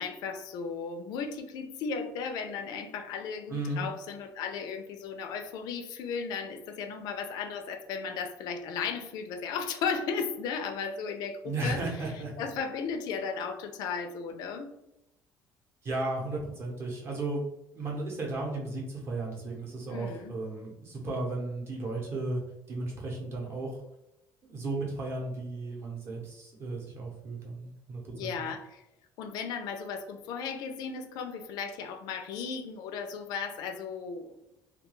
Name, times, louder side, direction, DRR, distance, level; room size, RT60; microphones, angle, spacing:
voice 1, 0.0-11.8 12.4-14.7 19.9-20.3 28.1-28.8 29.2-34.3, left 6 dB, 70° left, 6 dB, 0.3 m, -35 dB
voice 2, 3.5-3.8 11.4-12.5 15.8-17.4 17.7-22.4 22.7-23.7 24.4-28.3, right 2 dB, 40° right, -1 dB, 0.7 m, -34 dB
2.2 x 2.2 x 3.0 m, 0.86 s
cardioid pair, 170°, 7 cm